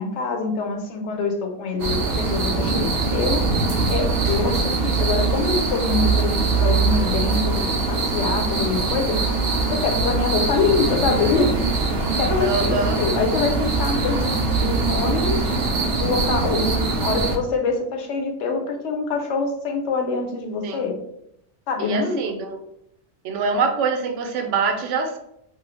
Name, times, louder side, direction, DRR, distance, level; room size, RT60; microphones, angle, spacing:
voice 1, 0.0-3.5 3.9-9.2 9.7-15.4 16.0-20.9 21.7-22.2, left 4 dB, 80° left, 4 dB, 0.9 m, -25 dB
sound 1, 1.8-17.4, right 3 dB, 60° right, 0.7 m, -22 dB
voice 2, 12.4-13.0 20.6-20.8 21.8-22.6 23.2-25.2, right 4 dB, 90° right, 5 dB, 0.9 m, -24 dB
3.1 x 2.0 x 3.3 m, 0.75 s
omnidirectional pair, 1.2 m